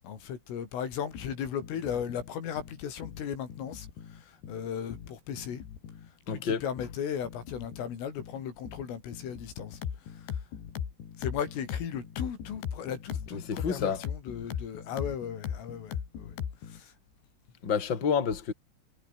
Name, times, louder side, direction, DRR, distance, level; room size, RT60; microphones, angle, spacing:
voice 1, 0.0-5.6 6.3-10.4 11.2-16.4 16.6-16.9, left 8 dB, 90° left, 6.5 m, -37 dB
sound 1, 1.2-16.8, left 8 dB, 60° left, 5.4 m, -39 dB
voice 2, 6.3-6.7 13.3-14.0 17.6-18.5, left 6 dB, 25° left, 3.4 m, -29 dB
omnidirectional pair, 5.6 m